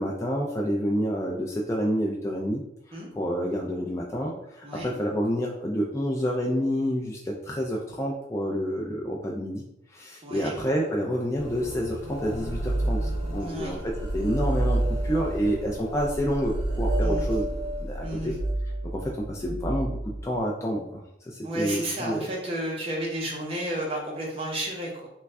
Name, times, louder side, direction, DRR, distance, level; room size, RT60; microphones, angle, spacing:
voice 1, 0.0-2.6 2.9-9.6 9.9-17.4 17.8-18.4 18.9-22.3, equal, 15° left, -2 dB, 0.3 m, -29 dB
voice 2, 4.6-4.9 10.2-10.6 13.4-13.8 17.0-17.3 18.0-18.3 21.4-25.1, right 1 dB, 30° right, -2 dB, 0.8 m, -32 dB
sound 1, 11.3-19.3, equal, 60° left, 0.7 m, -37 dB
sound 2, 12.4-13.5 13.8-20.4, right 1 dB, 60° right, 0.6 m, -29 dB
3.1 x 2.3 x 3.4 m, 0.83 s
head